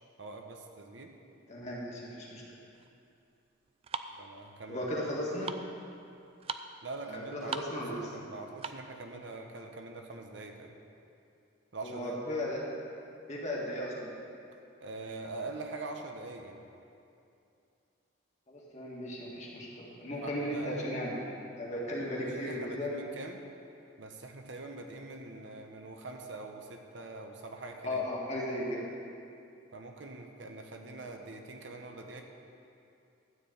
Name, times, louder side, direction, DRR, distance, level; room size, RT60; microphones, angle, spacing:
voice 1, 0.2-1.1 4.1-4.9 6.8-10.7 11.7-12.2 14.8-16.6 20.2-20.9 21.9-23.4 24.0-28.0 29.7-32.2, right 3 dB, 65° right, 3 dB, 0.9 m, -43 dB
voice 2, 1.5-2.4 4.7-5.5 7.1-8.0 11.8-12.6 13.3-14.1 18.5-21.3 21.6-23.0 27.8-28.9, left 1 dB, 35° left, -4 dB, 1.8 m, -36 dB
sound 1, 2.7-9.0, right 5 dB, 30° right, 0.3 m, -42 dB
12.5 x 4.6 x 8.5 m, 2.6 s
head